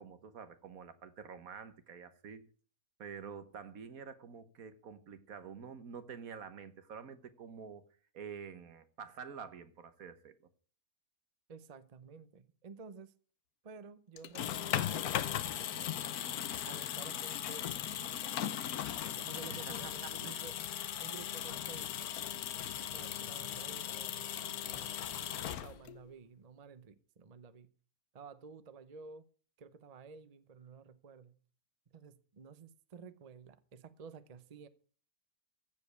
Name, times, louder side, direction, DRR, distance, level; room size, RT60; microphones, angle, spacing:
voice 1, 0.0-2.5 3.0-7.9 8.1-10.4 19.5-20.4, right 6 dB, 70° right, 1.6 m, -48 dB
voice 2, 11.5-13.1 13.6-18.6 19.2-20.6 21.0-22.1 22.7-27.7 28.1-29.3 29.6-31.4 31.9-34.7, right 5 dB, 35° right, 0.7 m, -53 dB
sound 1, 14.2-26.1, left 10 dB, 80° left, 1.3 m, -38 dB
15.0 x 5.2 x 8.2 m
omnidirectional pair, 1.5 m